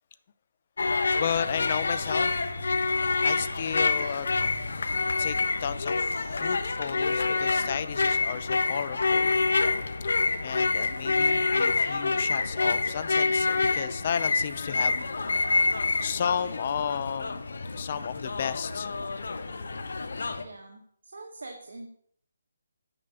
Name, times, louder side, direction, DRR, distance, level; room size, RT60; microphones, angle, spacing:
sound 1, 0.8-20.4, left 3 dB, 70° left, 1.1 m, -27 dB
voice 1, 1.2-2.3 3.2-4.3 5.2-9.4 10.4-15.1 16.0-17.5 17.7-18.9, left 8 dB, 30° left, 0.5 m, -33 dB
voice 2, 20.4-21.9, right 2 dB, 85° right, 1.7 m, -44 dB
9.8 x 5.1 x 6.9 m
hypercardioid pair, 175°, 0 cm